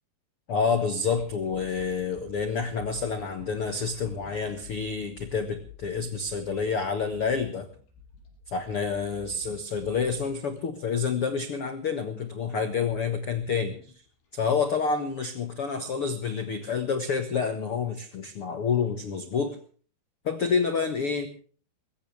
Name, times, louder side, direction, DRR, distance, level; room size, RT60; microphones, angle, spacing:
voice 1, 0.5-7.7 8.5-13.8 14.3-19.6 20.2-21.3, left 5 dB, 75° left, 8 dB, 1.2 m, -28 dB
sound 1, 1.1-14.3, left 6 dB, 90° left, 8.3 m, -51 dB
21.5 x 17.5 x 3.4 m, 0.43 s
omnidirectional pair, 5.0 m